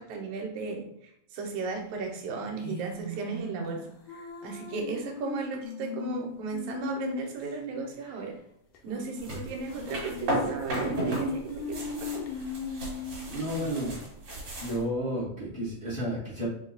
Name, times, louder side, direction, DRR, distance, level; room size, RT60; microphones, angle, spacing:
voice 1, 0.0-3.8 4.1-8.4 8.8-12.2, right 4 dB, 80° right, 2 dB, 2.2 m, -35 dB
sound 1, 2.6-7.5 7.8-7.9 8.1-8.2 8.7-9.3 9.6-13.3, left 5 dB, 85° left, 2.2 m, -38 dB
sound 2, 9.2-11.3 11.5-14.8, right 1 dB, 50° right, 2.4 m, -34 dB
voice 2, 13.2-14.0 14.6-16.5, equal, 30° right, -9 dB, 0.7 m, -32 dB
5.1 x 2.3 x 3.8 m, 0.74 s
omnidirectional pair, 3.4 m